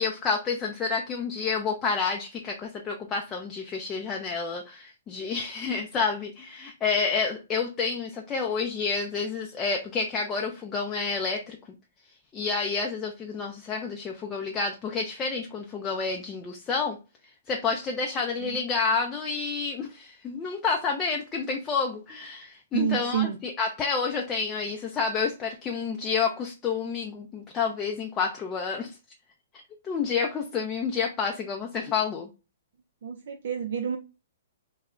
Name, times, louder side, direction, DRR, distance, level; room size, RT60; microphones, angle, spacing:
voice 1, 0.0-11.6 12.3-17.0 17.5-29.0 29.8-32.3, left 5 dB, 20° left, 0.4 m, -29 dB
voice 2, 22.7-23.4 33.0-34.0, right 9 dB, 65° right, 0.3 m, -28 dB
2.2 x 2.0 x 3.5 m
hypercardioid pair, 135°, 0 cm